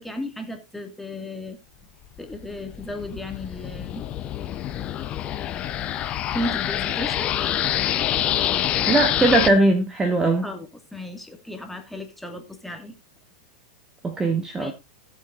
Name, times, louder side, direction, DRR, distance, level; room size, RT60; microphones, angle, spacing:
voice 1, 0.0-1.6 2.2-4.1 6.3-7.3 10.4-13.0 14.6-14.7, left 1 dB, 5° left, 2.2 m, -34 dB
sound 1, 2.2-9.5, left 11 dB, 35° left, 0.8 m, -26 dB
voice 2, 8.8-10.4 14.0-14.7, right 2 dB, 15° right, 1.4 m, -20 dB
16.5 x 7.7 x 2.6 m
figure-of-eight pair, 95°, 3 cm